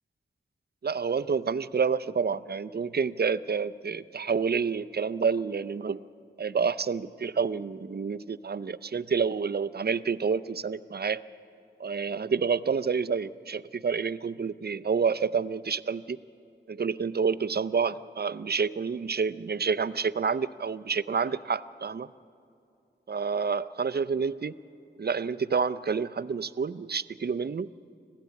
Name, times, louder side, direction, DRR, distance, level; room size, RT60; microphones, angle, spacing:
voice 1, 0.8-6.0 6.4-11.2 11.8-16.2 16.7-22.1 23.1-24.5 25.0-27.7, right 5 dB, 55° right, 15 dB, 0.5 m, -28 dB
26.0 x 16.0 x 8.3 m, 2.5 s
wide cardioid pair, 60°, 20 cm